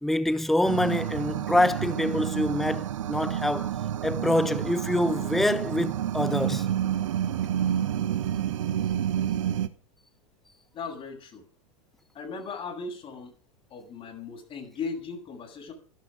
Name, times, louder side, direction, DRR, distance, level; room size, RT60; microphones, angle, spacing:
voice 1, 0.0-3.7 4.0-6.7, left 1 dB, ahead, 0.8 m, -26 dB
sound 1, 0.6-9.7, right 10 dB, 70° right, 1.3 m, -29 dB
voice 2, 10.7-11.4 12.1-13.3 13.7-15.7, left 4 dB, 35° left, 7.9 m, -37 dB
16.5 x 12.5 x 5.4 m
figure-of-eight pair, 90°, 17 cm